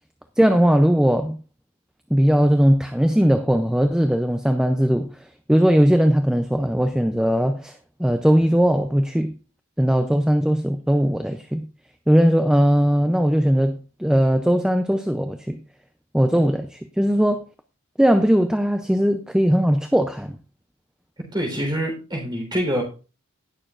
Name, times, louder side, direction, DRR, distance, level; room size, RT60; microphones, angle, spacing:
voice 1, 0.4-1.4 2.1-5.2 5.5-9.3 9.8-11.6 12.1-15.6 16.1-17.4 18.0-20.4, equal, 5° right, 0.4 m, -19 dB
voice 2, 21.3-22.8, equal, 20° right, 3.9 m, -25 dB
19.0 x 6.7 x 2.5 m
head